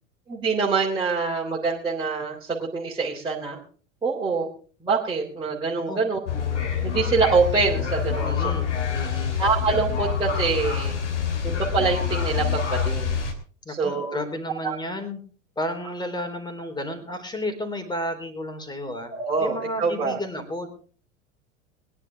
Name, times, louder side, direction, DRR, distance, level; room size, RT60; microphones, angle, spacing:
voice 1, 0.3-3.6 4.0-4.5 4.8-6.2 6.8-8.3 9.4-10.9 11.4-13.2 13.7-14.2 14.6-14.7 19.1-20.2, right 4 dB, 15° right, -6 dB, 3.5 m, -25 dB
sound 1, 6.3-13.3, left 7 dB, 70° left, 3.1 m, -26 dB
voice 2, 8.2-9.4 13.7-15.2 15.6-19.1 19.4-20.7, left 1 dB, 10° left, 6 dB, 3.7 m, -32 dB
22.0 x 11.0 x 3.6 m, 0.41 s
figure-of-eight pair, 80°, 37 cm